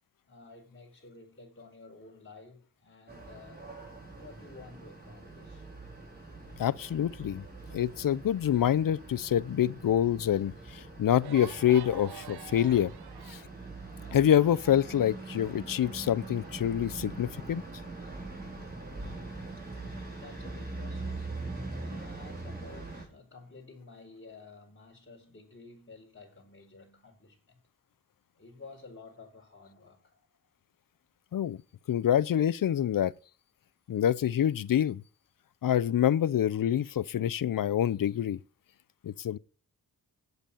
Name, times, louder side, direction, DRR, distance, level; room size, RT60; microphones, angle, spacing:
voice 1, 0.3-3.7 4.1-5.7 6.1-6.2 14.0-14.1 19.1-19.8 20.1-21.4 21.8-27.6 28.3-30.3, left 3 dB, 30° left, 4.9 m, -52 dB
sound 1, 3.1-23.0, right 3 dB, 25° right, 5.2 m, -43 dB
voice 2, 6.6-7.4 7.7-12.9 13.3-13.4 14.1-17.6 31.3-31.6 31.9-33.1 33.9-35.0 35.6-38.4 39.0-39.4, left 10 dB, 60° left, 0.6 m, -26 dB
sound 2, 11.2-16.3, right 10 dB, 80° right, 0.8 m, -48 dB
9.2 x 8.1 x 8.5 m
cardioid pair, 70°, 38 cm